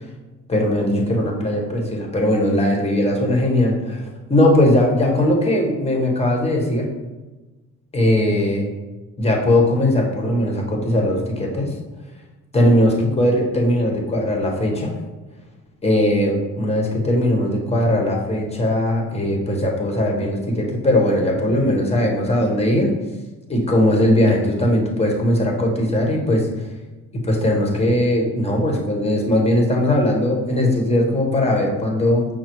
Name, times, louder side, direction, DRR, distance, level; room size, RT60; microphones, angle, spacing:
voice 1, 0.5-6.9 7.9-8.7 9.2-11.7 12.5-15.0 15.8-22.9 23.5-26.7 27.1-32.3, left 1 dB, 20° left, 0 dB, 1.1 m, -19 dB
5.6 x 2.0 x 4.5 m, 1.2 s
cardioid pair, 90°, 30 cm